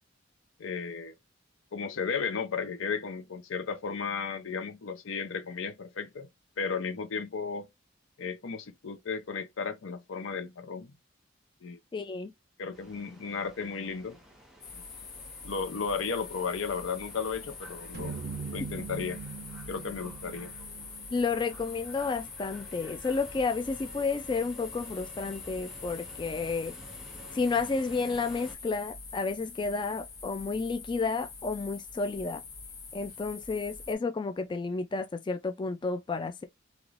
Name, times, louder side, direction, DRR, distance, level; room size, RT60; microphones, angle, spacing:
voice 1, 0.6-1.1 1.7-6.3 6.6-7.7 8.2-10.9 11.6-11.8 12.6-14.2 15.4-18.2 18.5-19.2 19.7-20.5, left 5 dB, 80° left, 0.6 m, -34 dB
voice 2, 11.9-12.3 18.6-18.7 21.1-26.7 27.3-32.4 32.9-36.4, left 4 dB, 25° left, 0.3 m, -31 dB
sound 1, 12.7-28.5, equal, 5° right, 1.1 m, -51 dB
sound 2, 14.6-34.0, left 4 dB, 55° left, 1.2 m, -45 dB
sound 3, 17.9-22.3, right 5 dB, 55° right, 0.4 m, -42 dB
3.2 x 2.9 x 2.4 m
head